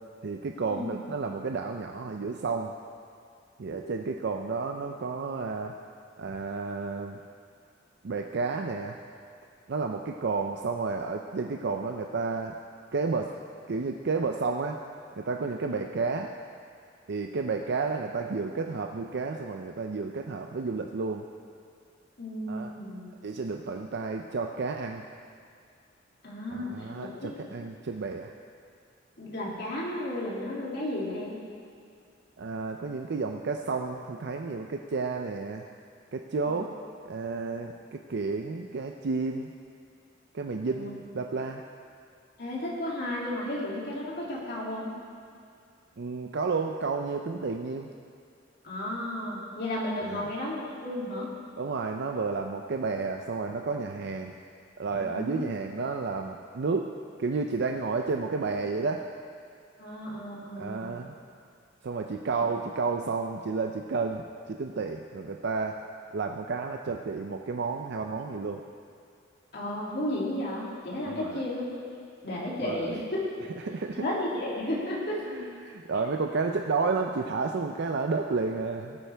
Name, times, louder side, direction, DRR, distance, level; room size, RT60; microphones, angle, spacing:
voice 1, 0.2-2.7 3.6-5.7 6.2-7.2 8.0-9.0 9.7-12.6 12.9-13.3 13.7-14.8 15.2-16.3 17.1-21.3 22.5-22.7 23.2-25.1 26.5-28.3 32.4-35.7 36.1-36.7 37.0-39.5 40.3-41.6 46.0-47.9 50.0-50.3 51.6-54.3 54.8-56.9 57.2-59.0 60.6-61.1 61.8-65.8 66.1-68.6 71.1-71.4 72.6-73.0 73.6-74.0 75.3-79.0, right 4 dB, 60° right, 4 dB, 0.5 m, -31 dB
voice 2, 3.7-4.1 15.7-15.8 22.2-23.0 26.2-26.9 27.2-27.3 29.2-31.4 36.4-36.7 40.7-40.9 42.4-44.9 48.6-51.3 54.9-55.7 59.8-60.9 62.3-62.4 69.5-71.8 72.2-73.4 74.0-75.2, left 1 dB, 55° left, -5 dB, 2.7 m, -33 dB
18.5 x 8.8 x 3.4 m, 2.3 s
head